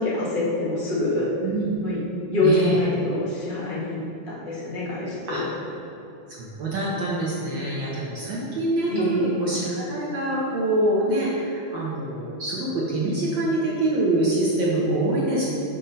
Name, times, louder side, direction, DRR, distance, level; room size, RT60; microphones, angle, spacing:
voice 1, 0.0-1.3 1.8-2.0 2.3-4.0 4.2-5.4 8.9-9.3, left 2 dB, 30° left, -9 dB, 1.0 m, -25 dB
voice 2, 1.4-1.7 2.4-2.8 5.3-5.4 6.4-15.5, right 1 dB, 75° right, -6 dB, 1.1 m, -25 dB
5.9 x 4.1 x 5.2 m, 2.9 s
omnidirectional pair, 3.3 m